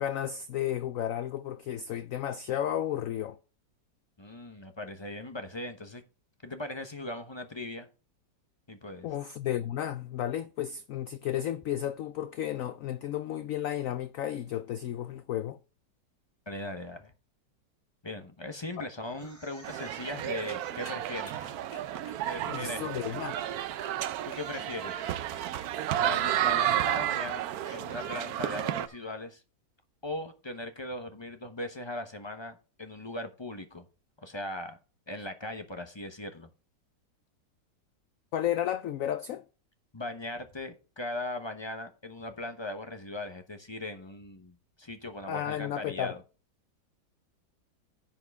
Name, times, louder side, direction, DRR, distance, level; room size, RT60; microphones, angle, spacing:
voice 1, 0.0-3.4 9.0-15.6 18.8-18.9 22.5-23.4 38.3-39.4 45.3-46.2, left 11 dB, 75° left, 0.7 m, -33 dB
voice 2, 4.2-6.0 6.4-7.9 8.7-9.1 16.5-17.1 18.0-21.5 22.2-23.2 24.2-25.1 26.0-27.5 27.7-29.4 30.0-33.8 34.2-34.8 35.1-36.5 39.9-46.2, left 1 dB, 25° left, 0.6 m, -39 dB
sound 1, 19.1-22.3 23.4-29.2, equal, 10° right, 4.8 m, -54 dB
sound 2, 19.6-28.9, right 12 dB, 70° right, 1.0 m, -32 dB
sound 3, 20.0-27.2, left 2 dB, 40° left, 2.8 m, -55 dB
10.5 x 7.2 x 3.5 m
omnidirectional pair, 1.9 m